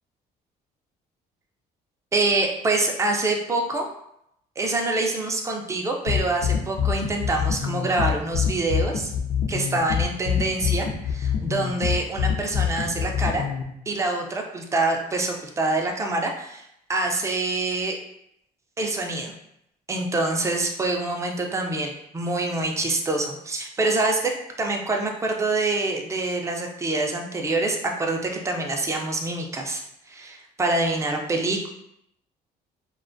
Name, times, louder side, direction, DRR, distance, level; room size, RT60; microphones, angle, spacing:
voice 1, 2.1-3.9 4.6-9.1 9.5-13.5 13.9-18.0 18.8-19.3 19.9-24.3 24.6-29.8 30.1-31.7, right 2 dB, 15° right, 2 dB, 0.4 m, -26 dB
sound 1, 6.1-13.6, left 8 dB, 55° left, 0.5 m, -25 dB
2.4 x 2.2 x 2.5 m, 0.77 s
cardioid pair, 110°, 17 cm